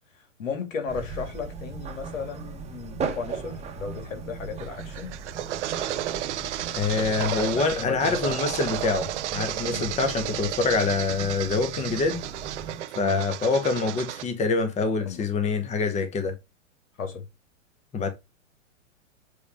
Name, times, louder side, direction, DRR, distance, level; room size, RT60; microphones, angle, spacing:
voice 1, 0.4-5.1 6.9-8.4 9.6-9.9 12.9-13.2 15.0-15.2 17.0-17.2, left 5 dB, 75° left, 2.7 m, -34 dB
sound 1, 0.9-12.8, right 5 dB, 15° right, 1.3 m, -38 dB
sound 2, 4.6-14.2, right 13 dB, 60° right, 0.8 m, -33 dB
voice 2, 6.8-12.2 13.0-16.3 17.9-18.1, left 4 dB, 15° left, 1.2 m, -25 dB
8.3 x 3.5 x 4.9 m
hypercardioid pair, 115°, 39 cm